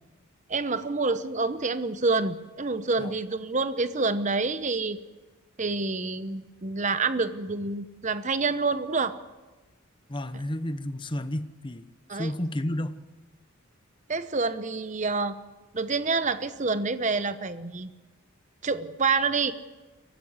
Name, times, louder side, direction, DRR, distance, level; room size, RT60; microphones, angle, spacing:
voice 1, 0.5-5.0 5.6-9.2 12.1-12.3 14.1-15.4 15.7-17.9 18.6-19.5, right 4 dB, 35° right, 12 dB, 0.9 m, -27 dB
voice 2, 10.1-11.9 12.1-13.0, left 1 dB, 20° left, 11 dB, 0.9 m, -31 dB
22.5 x 14.5 x 8.1 m, 1.2 s
head